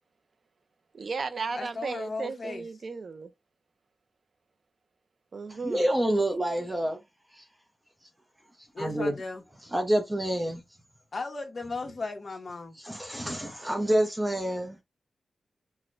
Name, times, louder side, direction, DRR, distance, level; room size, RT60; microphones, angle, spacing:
voice 1, 0.9-3.3 5.3-5.9, right 4 dB, 55° right, 0.5 m, -35 dB
voice 2, 1.6-2.6 8.7-9.4 11.1-12.8, left 3 dB, 40° left, 1.0 m, -36 dB
voice 3, 5.6-7.0 7.3-7.4 8.8-9.1 9.7-10.6 12.8-14.8, right 1 dB, 15° right, 0.6 m, -27 dB
5.9 x 2.1 x 2.5 m
wide cardioid pair, 115°, 0 cm